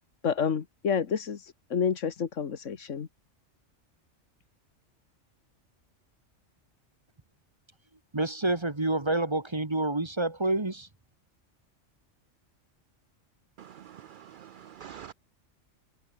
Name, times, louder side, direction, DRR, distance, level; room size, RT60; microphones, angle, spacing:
voice 1, 0.2-3.1, left 7 dB, 80° left, 1.7 m, -29 dB
voice 2, 8.1-10.9, right 2 dB, 25° right, 1.5 m, -28 dB
voice 3, 13.6-15.1, right 9 dB, 60° right, 0.5 m, -46 dB
open air
omnidirectional pair, 1.3 m